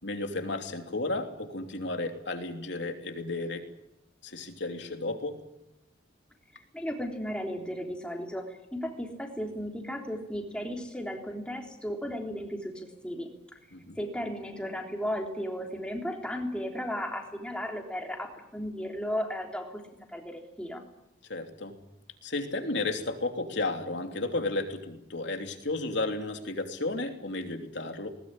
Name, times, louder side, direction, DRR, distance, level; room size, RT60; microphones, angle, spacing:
voice 1, 0.0-3.6 4.2-5.4 13.7-14.0 21.3-21.7 22.2-28.1, left 2 dB, 65° left, 5 dB, 3.1 m, -33 dB
voice 2, 6.5-13.3 14.0-20.8, equal, 5° left, 1 dB, 3.5 m, -35 dB
20.0 x 20.0 x 9.8 m, 0.88 s
head